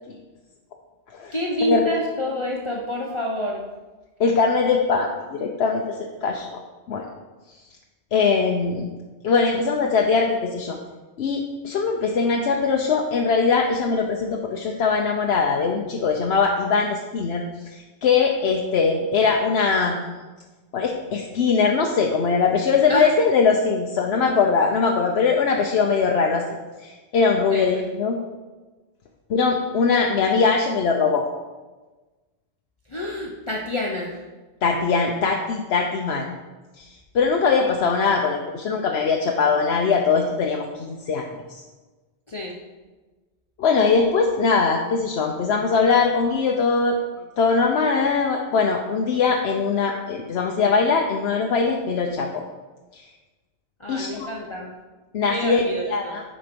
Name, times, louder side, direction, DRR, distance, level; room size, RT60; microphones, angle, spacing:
voice 1, 1.3-3.7 22.9-23.1 27.5-27.7 32.9-34.2 42.3-42.6 53.8-54.7 55.3-56.2, left 1 dB, 30° left, -1 dB, 0.7 m, -28 dB
voice 2, 4.2-6.6 6.9-7.0 8.1-8.9 9.2-10.8 11.2-20.0 20.7-26.4 26.8-28.2 29.3-31.2 34.6-36.3 36.8-36.9 37.1-41.6 43.6-47.0 47.4-52.4 52.9-53.0 53.9-54.3 55.1-56.2, left 5 dB, 70° left, 1 dB, 0.9 m, -21 dB
10.0 x 4.4 x 5.1 m, 1.3 s
omnidirectional pair, 1.1 m